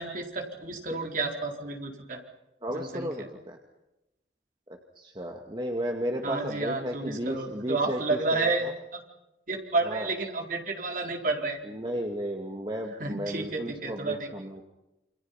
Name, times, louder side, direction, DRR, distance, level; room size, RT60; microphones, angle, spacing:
voice 1, 0.0-2.2 2.7-3.1 6.2-8.7 8.9-9.0 9.5-11.6 13.0-14.3, right 3 dB, 45° right, 2 dB, 4.5 m, -31 dB
voice 2, 2.6-3.6 5.0-8.7 9.8-10.1 11.6-14.6, equal, 25° right, 2 dB, 2.2 m, -34 dB
29.0 x 26.0 x 5.9 m, 0.93 s
head